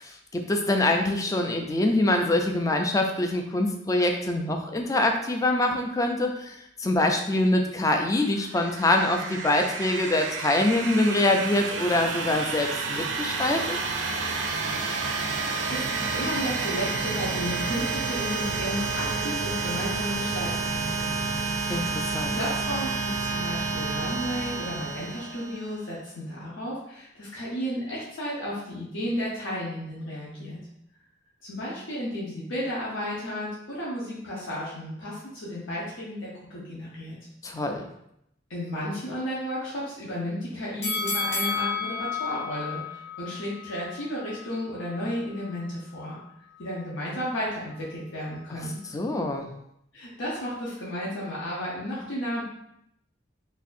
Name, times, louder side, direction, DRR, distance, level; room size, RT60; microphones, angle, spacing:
voice 1, 0.0-13.8 21.7-22.4 37.4-37.9 48.9-49.5, left 1 dB, 15° left, 4 dB, 0.3 m, -24 dB
sound 1, 8.2-25.8, right 4 dB, 80° right, 0.5 m, -30 dB
voice 2, 15.7-21.6 22.0-30.6 31.4-37.1 38.5-46.2 46.6-48.8 49.9-52.4, equal, 85° left, -7 dB, 0.9 m, -33 dB
sound 2, 40.8-43.9 44.3-44.4, left 5 dB, 60° left, 0.7 m, -31 dB
4.1 x 2.7 x 2.5 m, 0.77 s
head